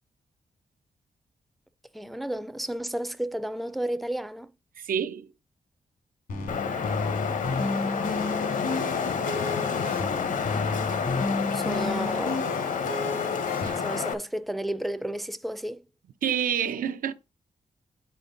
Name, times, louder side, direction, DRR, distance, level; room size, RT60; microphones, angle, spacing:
voice 1, 1.9-4.5 11.5-12.5 13.7-15.8, right 1 dB, ahead, 0.4 m, -32 dB
voice 2, 4.8-5.3 11.7-11.9 13.6-13.7 16.2-17.1, right 8 dB, 90° right, 0.6 m, -28 dB
sound 1, 6.3-13.7, left 3 dB, 90° left, 2.5 m, -32 dB
Wind, 6.5-14.1, left 6 dB, 65° left, 0.8 m, -29 dB
8.5 x 4.4 x 3.8 m
wide cardioid pair, 165°, 14 cm